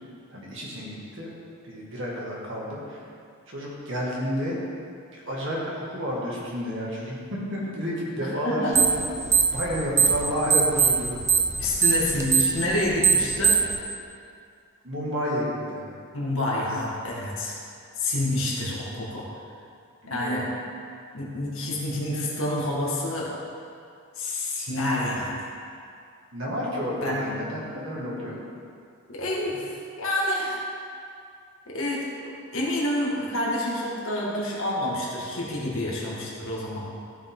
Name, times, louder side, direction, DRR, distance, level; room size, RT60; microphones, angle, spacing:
voice 1, 0.3-1.3 1.6-3.1 3.5-4.6 5.1-8.8 9.5-11.1 11.6-11.8 14.8-15.9 20.0-20.5 26.3-28.4, equal, 55° right, -5 dB, 2.0 m, -30 dB
voice 2, 8.2-8.9 11.6-13.6 16.1-17.5 18.0-19.3 20.1-20.4 21.1-23.3 24.1-25.5 27.0-27.2 29.1-30.6 31.7-36.9, left 1 dB, 65° left, -4 dB, 1.9 m, -28 dB
sound 1, 8.7-9.0 9.3-10.2 10.5-13.7, right 6 dB, 15° right, 0.5 m, -19 dB
14.0 x 5.6 x 3.7 m, 2.3 s
head